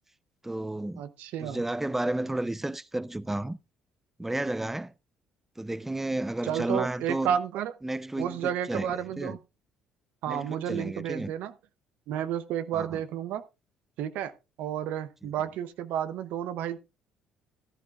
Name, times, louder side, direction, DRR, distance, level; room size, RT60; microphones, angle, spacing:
voice 1, 0.4-1.0 1.4-3.6 4.2-4.9 5.6-7.3 7.8-9.4 10.3-11.3 12.7-12.9, right 1 dB, 10° right, 0.6 m, -32 dB
voice 2, 1.0-1.6 6.4-7.7 8.2-9.4 10.2-11.5 12.1-13.4 14.0-14.3 14.6-16.8, right 9 dB, 70° right, 0.7 m, -31 dB
15.5 x 11.0 x 2.4 m
hypercardioid pair, 65°, 3 cm